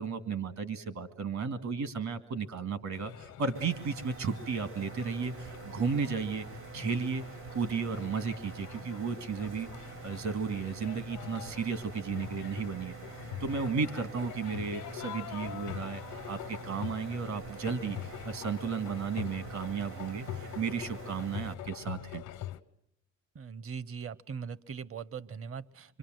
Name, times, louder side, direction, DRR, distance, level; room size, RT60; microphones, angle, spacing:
voice 1, 0.0-6.5 6.7-22.2, right 5 dB, 70° right, 12 dB, 2.3 m, -34 dB
sound 1, 2.9-22.6, left 12 dB, 90° left, 1.1 m, -44 dB
sound 2, 3.5-21.5, right 5 dB, 85° right, 4.0 m, -46 dB
voice 2, 23.3-26.0, right 6 dB, 50° right, 20 dB, 0.9 m, -40 dB
26.0 x 24.0 x 7.8 m, 0.79 s
cardioid pair, 90°, 30 cm